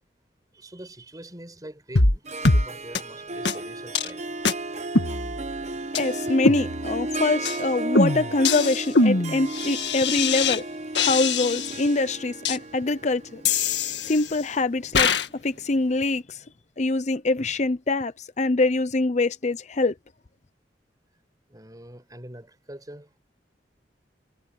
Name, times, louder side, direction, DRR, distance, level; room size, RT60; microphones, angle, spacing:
voice 1, 0.5-4.3 21.5-23.2, right 1 dB, 20° right, 5.0 m, -44 dB
sound 1, 2.0-2.2 2.5-2.7 3.0-3.1 3.5-3.6 4.0-4.1 4.5-4.6 5.0-5.6 6.0-6.1 6.5-7.1 7.5-7.6 8.0-10.6 11.0-11.9 12.5-12.6 13.5-14.4 15.0-15.3, left 3 dB, 75° left, 1.7 m, -23 dB
Harp, 2.3-15.8, right 2 dB, 40° right, 1.1 m, -34 dB
voice 2, 5.9-10.6 11.0-13.4 14.1-16.4 16.8-19.9, left 2 dB, 40° left, 0.6 m, -24 dB
head